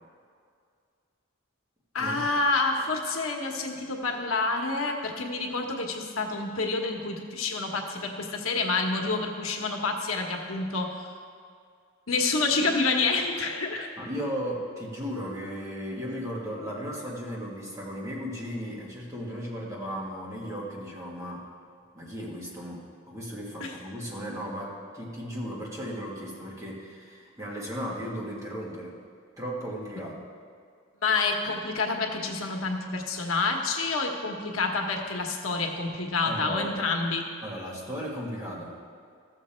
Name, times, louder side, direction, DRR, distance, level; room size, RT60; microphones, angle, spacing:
voice 1, 1.9-10.9 12.1-13.9 23.6-23.8 31.0-37.3, left 3 dB, 85° left, 2 dB, 1.2 m, -28 dB
voice 2, 14.0-21.4 21.9-29.0 29.4-30.2 36.2-36.8 37.4-38.8, equal, 15° right, -5 dB, 1.8 m, -36 dB
14.5 x 7.2 x 4.4 m, 2.2 s
head